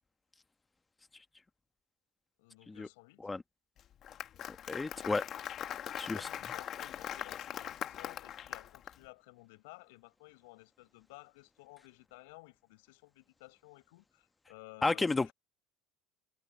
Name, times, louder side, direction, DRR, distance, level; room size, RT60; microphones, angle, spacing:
voice 1, 2.4-3.3 6.0-15.3, left 25 dB, 80° left, 5.3 m, -55 dB
Applause, 3.8-8.9, left 10 dB, 45° left, 1.6 m, -41 dB
voice 2, 4.7-5.2 6.0-6.3 14.8-15.3, left 3 dB, 15° left, 1.3 m, -32 dB
supercardioid pair, 95°, 0 cm